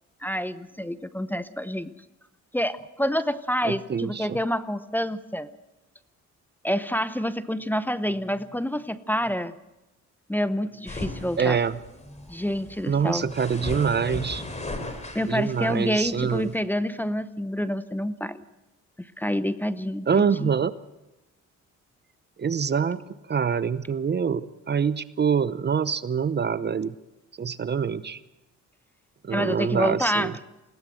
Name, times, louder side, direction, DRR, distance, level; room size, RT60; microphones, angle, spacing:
voice 1, 0.2-1.9 2.5-5.5 6.6-9.5 10.3-11.6 12.2-13.3 14.8-18.4 19.2-20.1 20.4-20.5 29.3-30.3, equal, 5° left, 14 dB, 0.8 m, -28 dB
voice 2, 3.6-4.4 11.4-11.8 12.9-14.4 15.3-16.5 20.1-20.7 22.4-23.0 23.3-26.9 27.4-28.2 29.2-30.3, right 6 dB, 35° right, 15 dB, 0.8 m, -25 dB
sound 1, 10.9-16.6, left 2 dB, 25° left, 3.5 m, -38 dB
20.5 x 16.5 x 7.8 m, 1.0 s
cardioid pair, 90°, 30 cm